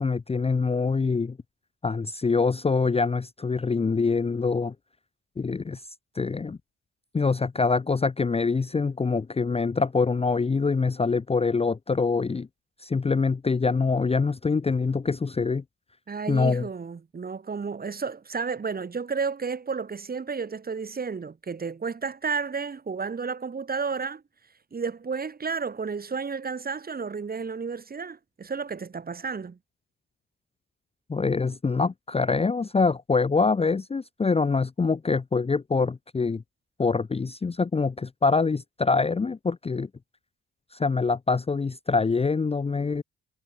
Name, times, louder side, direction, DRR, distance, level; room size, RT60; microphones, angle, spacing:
voice 1, 0.0-1.4 1.8-4.7 5.4-5.8 6.2-6.6 7.1-12.5 12.8-15.6 16.3-16.7 31.1-36.4 36.8-39.9 40.7-43.0, left 4 dB, 20° left, 0.7 m, -25 dB
voice 2, 16.1-24.2 24.7-29.6, right 5 dB, 30° right, 1.7 m, -32 dB
cardioid pair, 90°, 30 cm